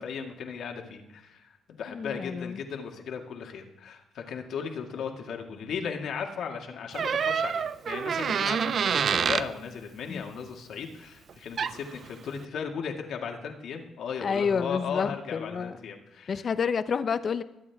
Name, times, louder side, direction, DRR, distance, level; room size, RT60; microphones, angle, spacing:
voice 1, 0.0-16.5, left 6 dB, 70° left, 2 dB, 2.0 m, -36 dB
voice 2, 1.9-2.6 10.1-10.2 14.2-15.7 16.3-17.4, left 6 dB, 50° left, 12 dB, 0.7 m, -29 dB
Door, 6.9-9.5 11.3-11.4 11.6-11.9, right 7 dB, 50° right, 0.4 m, -27 dB
22.5 x 8.6 x 3.5 m, 0.98 s
cardioid pair, 90°, 0 cm